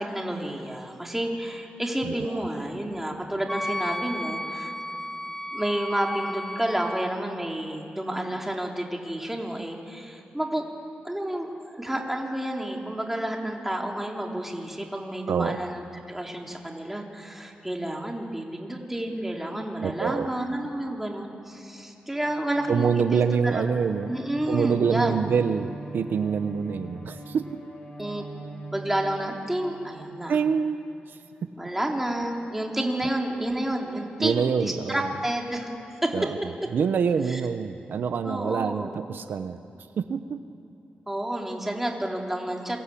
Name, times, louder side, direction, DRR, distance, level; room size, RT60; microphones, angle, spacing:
voice 1, 0.0-4.7 5.5-10.6 11.0-23.6 24.1-25.2 28.0-28.3 28.7-30.4 31.6-35.7 36.0-36.5 37.3-37.4 38.2-38.9 41.1-42.8, right 1 dB, 5° right, 0 dB, 3.4 m, -30 dB
Wind instrument woodwind instrument, 3.5-7.1, left 1 dB, 10° left, 1.2 m, -33 dB
voice 2, 19.8-20.3 22.7-24.1 24.5-27.5 30.3-30.8 31.1-31.2 34.2-35.1 36.1-36.4 36.7-39.6 40.0-40.4, right 6 dB, 75° right, 10 dB, 0.9 m, -26 dB
Bowed string instrument, 22.1-30.5, right 2 dB, 40° left, 5.2 m, -42 dB
27.0 x 24.0 x 8.6 m, 2.8 s
wide cardioid pair, 115°, 3 cm